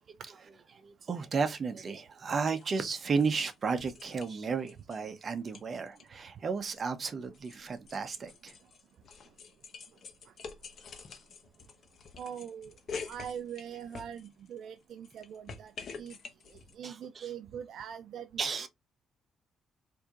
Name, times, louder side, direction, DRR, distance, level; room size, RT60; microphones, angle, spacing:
voice 1, 0.7-8.6 16.8-17.3 18.4-18.7, right 5 dB, 45° right, 0.8 m, -33 dB
sound 1, 2.5-2.7 3.0-5.0 5.3-6.1 6.4-14.6 14.9-16.7, left 5 dB, 55° left, 0.8 m, -47 dB
voice 2, 12.2-12.7 13.1-15.7 16.0-16.2 16.8-18.7, right 8 dB, 70° right, 0.3 m, -42 dB
4.4 x 2.7 x 2.4 m
cardioid pair, 90°, 0 cm